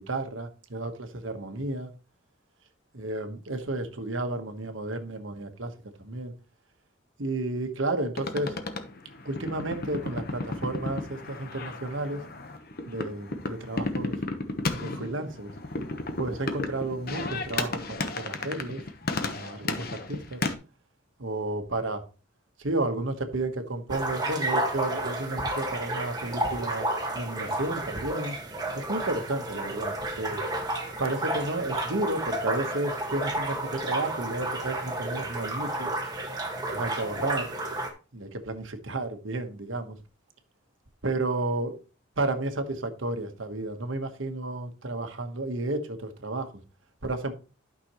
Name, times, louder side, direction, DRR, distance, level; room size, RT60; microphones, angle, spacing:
voice 1, 0.0-1.9 2.9-5.7 6.0-6.3 7.2-8.6 9.2-12.2 12.9-14.1 14.7-15.5 16.2-18.8 19.2-20.4 21.2-22.0 22.6-26.9 27.1-28.4 28.7-30.4 31.0-35.9 36.7-37.5 38.1-40.0 41.0-41.8 42.2-46.5 47.0-47.3, right 2 dB, 70° right, 1.3 m, -32 dB
sound 1, 8.2-20.5, left 3 dB, 50° left, 1.1 m, -34 dB
sound 2, 23.9-37.9, right 1 dB, 20° right, 1.6 m, -31 dB
12.0 x 6.1 x 3.1 m
head